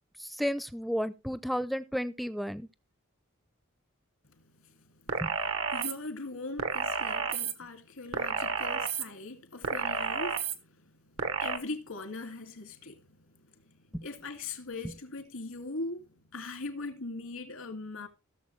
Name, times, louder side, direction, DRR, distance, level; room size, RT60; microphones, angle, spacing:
voice 1, 0.2-2.7 5.2-5.3, equal, ahead, 0.6 m, -32 dB
voice 2, 4.3-5.2 5.7-18.1, left 3 dB, 80° left, 2.4 m, -41 dB
sound 1, 5.1-5.9 6.6-7.5 8.1-9.0 9.6-10.5 11.2-11.6, right 5 dB, 75° right, 1.3 m, -31 dB
17.0 x 7.0 x 3.3 m
head